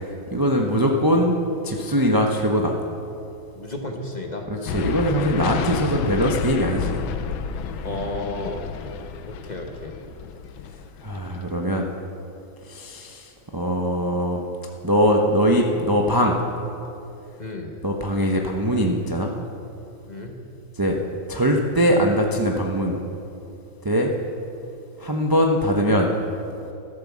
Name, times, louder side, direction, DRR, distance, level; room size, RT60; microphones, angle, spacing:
voice 1, 0.3-1.4 1.6-2.8 4.5-7.1 11.0-11.9 12.7-14.4 14.8-16.4 17.8-19.3 20.8-21.0 21.3-23.0 23.8-24.1 25.0-26.1, equal, 30° right, 1 dB, 0.4 m, -21 dB
voice 2, 3.5-4.5 7.8-8.7 9.2-9.9 17.4-17.7 20.1-20.4, left 2 dB, 25° left, 2 dB, 1.1 m, -33 dB
sound 1, 4.7-11.6, left 7 dB, 90° left, 1.5 m, -31 dB
13.0 x 12.0 x 7.3 m, 2.8 s
omnidirectional pair, 2.1 m